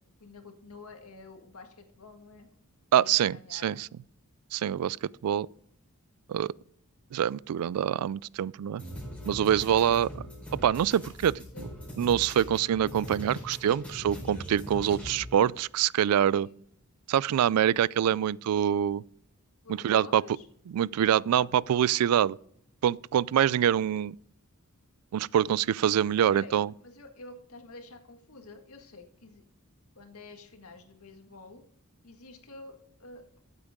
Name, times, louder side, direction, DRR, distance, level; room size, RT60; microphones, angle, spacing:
voice 1, 0.2-2.5 2.9-3.8 11.3-11.9 16.4-16.6 19.6-20.5 21.3-21.5 26.3-29.4 29.9-31.6 32.0-33.4, left 3 dB, 75° left, 1.9 m, -49 dB
voice 2, 2.9-3.9 4.5-5.0 5.2-5.5 6.3-6.5 7.1-8.8 9.2-10.2 10.6-11.3 12.0-16.5 17.1-19.0 19.8-20.2 20.7-22.4 22.8-24.2 25.1-26.7, right 9 dB, 85° right, 0.3 m, -25 dB
sound 1, 8.8-15.4, equal, 5° left, 4.6 m, -41 dB
14.0 x 8.3 x 3.7 m
head